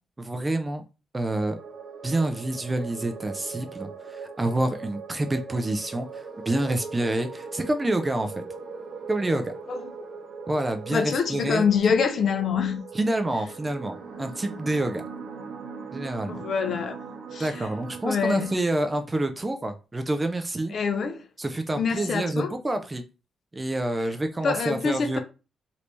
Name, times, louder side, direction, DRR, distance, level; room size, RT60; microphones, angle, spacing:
voice 1, 0.2-0.8 1.1-1.6 2.0-8.4 9.1-9.5 10.5-11.6 12.9-15.0 15.9-16.4 17.4-20.7 21.4-23.0 23.5-25.2, right 1 dB, 15° right, 0.3 m, -27 dB
sound 1, 1.3-18.6, right 5 dB, 45° right, 0.9 m, -40 dB
voice 2, 9.7-10.1 10.9-12.8 16.3-17.0 17.3-17.7 18.1-18.6 20.7-21.2 21.7-22.5 24.4-25.2, left 6 dB, 45° left, 0.5 m, -26 dB
3.2 x 2.6 x 3.0 m
cardioid pair, 165°, 0 cm